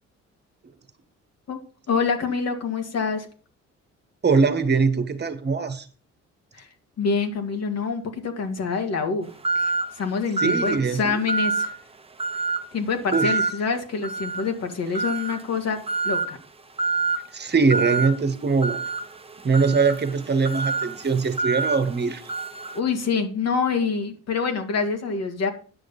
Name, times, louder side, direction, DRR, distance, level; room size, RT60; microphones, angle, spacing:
voice 1, 1.9-3.3 6.5-6.7 7.0-9.3 9.5-11.8 12.7-15.8 16.0-16.4 22.7-25.5, left 5 dB, 55° left, 2.2 m, -26 dB
voice 2, 4.2-5.9 10.4-11.2 13.1-13.3 17.3-18.8 19.4-22.2, right 4 dB, 35° right, 1.5 m, -22 dB
sound 1, 9.4-9.9 10.4-10.8 11.3-11.8 12.2-12.6 13.1-13.5 14.0-14.5 14.9-15.4 15.9-16.3 16.8-17.2 17.7-18.1 18.6-22.8, right 4 dB, 20° right, 1.0 m, -26 dB
10.0 x 6.4 x 5.5 m
cardioid pair, 90°, 30 cm